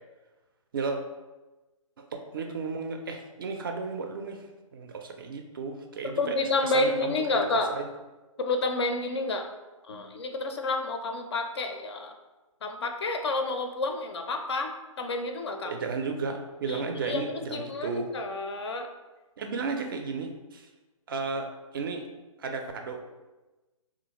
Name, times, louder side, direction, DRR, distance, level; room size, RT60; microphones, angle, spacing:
voice 1, 2.0-4.5 4.7-7.9 15.6-18.1 19.4-20.7 21.1-21.5 21.7-22.0 22.4-23.2, right 4 dB, 40° right, 5 dB, 0.4 m, -34 dB
voice 2, 6.2-7.7 8.4-9.5 9.9-12.1 12.6-15.7 16.7-18.9, left 2 dB, 50° left, 5 dB, 0.4 m, -29 dB
3.4 x 2.5 x 2.9 m, 1.1 s
figure-of-eight pair, 140°, 17 cm